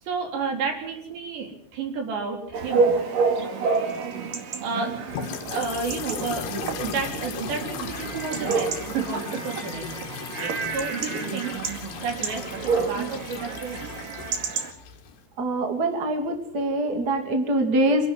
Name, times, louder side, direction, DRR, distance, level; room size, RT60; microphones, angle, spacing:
voice 1, 0.0-3.0 4.6-5.0 5.5-9.9 10.4-11.7 12.0-13.9, right 4 dB, 75° right, 3 dB, 6.0 m, -31 dB
Chatter / Bark / Livestock farm animals working animals, 2.5-14.7, right 5 dB, 55° right, 3.6 m, -29 dB
sound 1, 5.1-15.2, left 9 dB, 70° left, 3.6 m, -37 dB
voice 2, 15.4-18.1, right 1 dB, 25° right, 4 dB, 2.6 m, -24 dB
26.5 x 11.5 x 9.4 m, 0.69 s
omnidirectional pair, 5.0 m